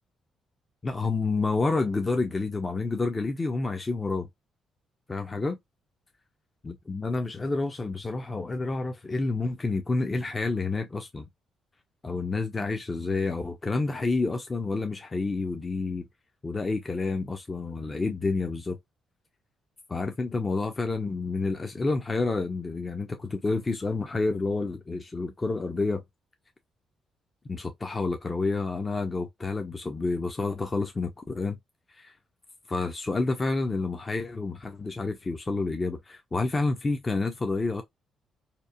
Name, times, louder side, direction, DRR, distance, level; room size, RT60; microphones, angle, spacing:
voice 1, 0.8-4.3 5.1-5.6 6.6-11.3 12.0-16.1 16.4-18.8 19.9-26.0 27.5-31.6 32.0-32.1 32.7-37.8, left 3 dB, 25° left, 0.5 m, -29 dB
2.8 x 2.0 x 2.4 m
cardioid pair, 90°, 0 cm